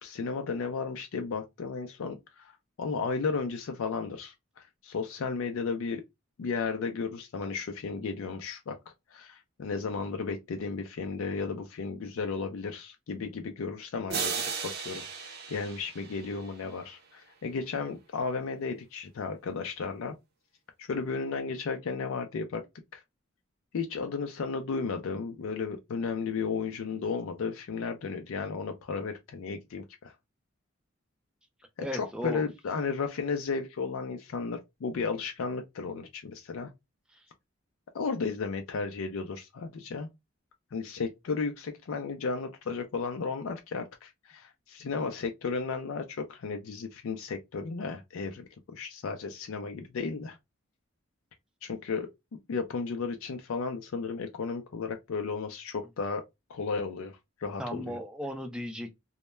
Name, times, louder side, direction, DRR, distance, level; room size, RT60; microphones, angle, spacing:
voice 1, 0.0-6.0 6.4-8.8 9.1-14.3 14.6-20.1 20.8-22.6 22.9-23.0 23.7-30.1 31.9-36.7 37.9-40.1 40.7-50.4 51.6-52.1 52.5-56.2 56.5-58.0, left 4 dB, 85° left, 0.4 m, -34 dB
sound 1, 14.1-16.8, right 5 dB, 50° right, 0.5 m, -35 dB
voice 2, 31.8-32.5 37.1-37.2 57.6-59.0, equal, 5° right, 0.3 m, -36 dB
2.2 x 2.1 x 3.0 m
head